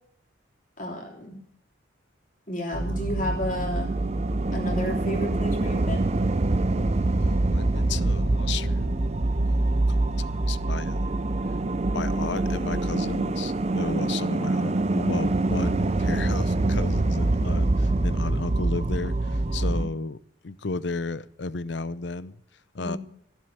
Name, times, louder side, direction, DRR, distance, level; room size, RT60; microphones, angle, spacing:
voice 1, 0.8-1.4 2.5-3.9 4.5-6.1 19.7-19.8 22.8-23.0, left 1 dB, 40° left, 0 dB, 3.3 m, -32 dB
sound 1, 2.7-19.9, right 2 dB, 30° right, 0.5 m, -25 dB
voice 2, 7.2-9.0 9.5-11.2 11.9-20.2 20.4-22.4 22.7-23.0, left 3 dB, 60° left, 17 dB, 0.6 m, -34 dB
15.0 x 7.5 x 9.9 m, 0.68 s
head